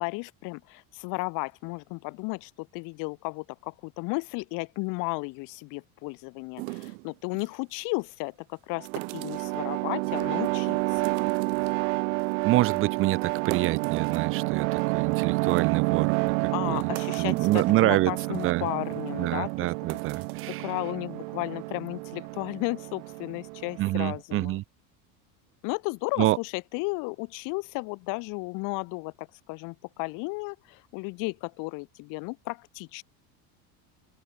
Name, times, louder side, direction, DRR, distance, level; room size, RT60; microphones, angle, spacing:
voice 1, 0.0-8.9 9.1-11.1 16.5-19.5 20.5-24.6 25.6-33.0, left 28 dB, 50° left, 1.9 m, -34 dB
sound 1, 6.6-7.6 8.8-9.5 10.0-10.5 10.9-11.8 12.2-12.3 12.7-12.8 13.2-14.8 15.1-15.2 15.5-15.6 16.3-16.4 16.8-17.7 18.2-18.4 18.9-19.1 19.7-20.5, right 26 dB, 85° right, 1.0 m, -38 dB
sound 2, 8.8-24.2, right 30 dB, 70° right, 0.6 m, -29 dB
voice 2, 12.4-16.9 17.2-18.7 19.2-20.7 23.8-24.6 26.2-26.4, right 17 dB, 30° right, 0.8 m, -27 dB
open air
cardioid pair, 180°, 41 cm